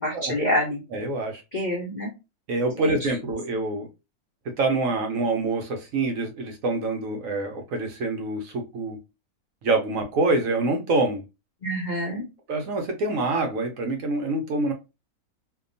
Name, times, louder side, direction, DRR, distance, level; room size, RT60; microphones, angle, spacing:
voice 1, 0.0-0.8 1.5-2.1 2.8-3.1 11.6-12.3, equal, 55° left, 0.5 m, -27 dB
voice 2, 0.9-1.4 2.5-3.9 4.6-9.0 9.6-11.2 12.5-14.7, right 2 dB, 70° right, 1.0 m, -26 dB
2.8 x 2.2 x 2.5 m
omnidirectional pair, 1.6 m